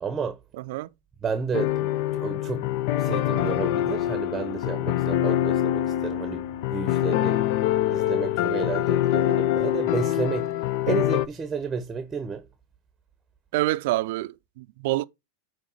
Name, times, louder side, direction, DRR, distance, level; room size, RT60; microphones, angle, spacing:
voice 1, 0.0-0.4 1.2-2.7 2.9-7.4 7.9-12.5, right 5 dB, 20° right, 0.7 m, -31 dB
voice 2, 0.5-0.9 5.1-5.3 13.5-15.1, right 17 dB, 65° right, 0.4 m, -27 dB
sound 1, 1.5-11.3, left 13 dB, 60° left, 0.4 m, -25 dB
8.5 x 3.2 x 5.5 m
hypercardioid pair, 105°, 0 cm